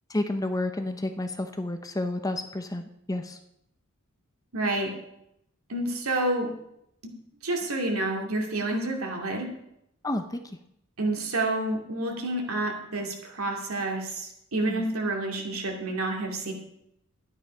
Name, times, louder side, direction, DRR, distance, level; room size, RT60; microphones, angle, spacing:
voice 1, 0.1-3.4 8.7-8.9 10.0-10.4 14.6-14.9, left 1 dB, 15° left, 7 dB, 0.7 m, -30 dB
voice 2, 4.5-4.9 5.7-6.5 7.4-9.5 11.0-16.5, right 2 dB, 85° right, 1 dB, 2.6 m, -29 dB
12.0 x 9.6 x 5.6 m, 0.79 s
head